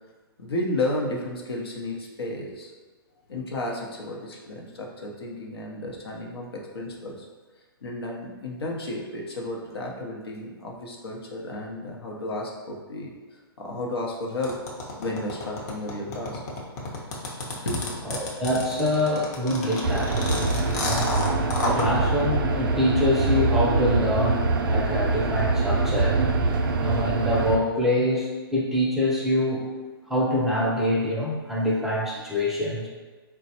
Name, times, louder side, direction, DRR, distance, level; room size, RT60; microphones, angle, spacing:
voice 1, 0.4-2.7 3.3-7.3 7.8-14.6 14.9-16.4 17.6-18.2, left 1 dB, 80° left, -1 dB, 0.8 m, -32 dB
sound 1, 14.4-21.9, left 2 dB, 45° left, 0.8 m, -30 dB
voice 2, 18.1-21.1 21.6-26.2 26.8-29.6 30.1-32.9, left 1 dB, ahead, -5 dB, 0.5 m, -25 dB
sound 2, 19.8-27.6, right 3 dB, 55° right, 0.4 m, -24 dB
4.2 x 2.2 x 2.8 m, 1.4 s
hypercardioid pair, 130°, 13 cm